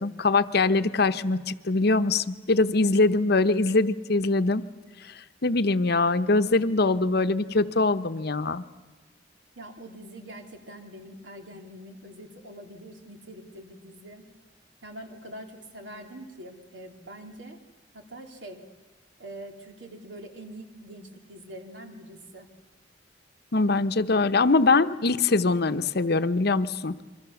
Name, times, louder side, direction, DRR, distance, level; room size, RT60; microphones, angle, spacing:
voice 1, 0.0-4.6 5.4-8.6 23.5-27.0, left 3 dB, 60° left, 11 dB, 0.9 m, -23 dB
voice 2, 9.5-14.3 14.8-17.6 17.9-18.6 19.2-22.5, right 1 dB, 75° right, 4 dB, 3.0 m, -44 dB
28.0 x 24.0 x 7.1 m, 1.3 s
head